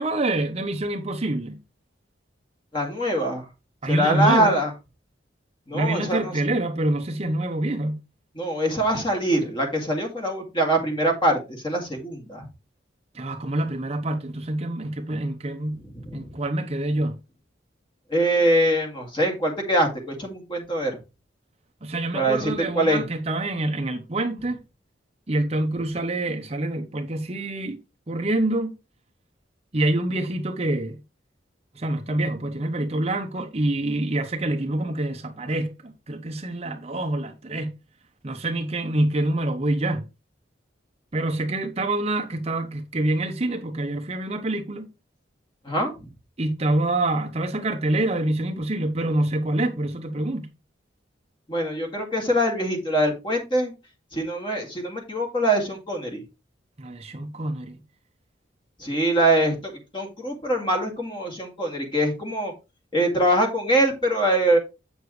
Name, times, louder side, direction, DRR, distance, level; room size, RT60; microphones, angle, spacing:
voice 1, 0.0-1.6 3.8-4.6 5.7-8.0 13.1-15.8 16.1-17.2 21.8-24.6 25.3-27.8 28.1-28.8 29.7-31.0 31.8-37.7 38.2-40.0 41.1-44.9 46.4-50.5 56.8-57.8, right 1 dB, 35° right, 0.8 m, -26 dB
voice 2, 2.7-3.5 3.9-4.7 5.7-6.3 8.4-12.5 16.0-16.3 18.1-20.9 22.1-23.0 45.7-45.9 51.5-53.7 54.1-56.2 58.8-62.5 62.9-64.6, right 1 dB, 25° left, 2.3 m, -23 dB
8.2 x 6.6 x 3.2 m
head